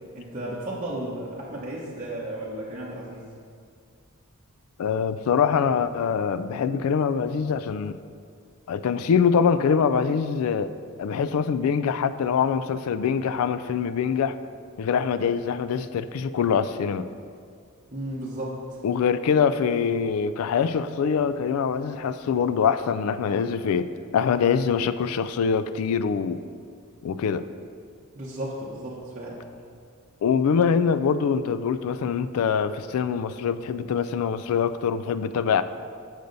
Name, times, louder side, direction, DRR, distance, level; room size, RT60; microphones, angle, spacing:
voice 1, 0.1-3.3 17.9-18.8 28.1-29.4, right 1 dB, 35° right, -7 dB, 0.9 m, -34 dB
voice 2, 4.8-8.0 8.7-10.7 11.0-14.4 14.8-17.1 18.8-26.4 27.0-27.4 30.2-35.6, left 6 dB, 75° left, 13 dB, 0.3 m, -24 dB
6.9 x 6.5 x 3.9 m, 2.2 s
head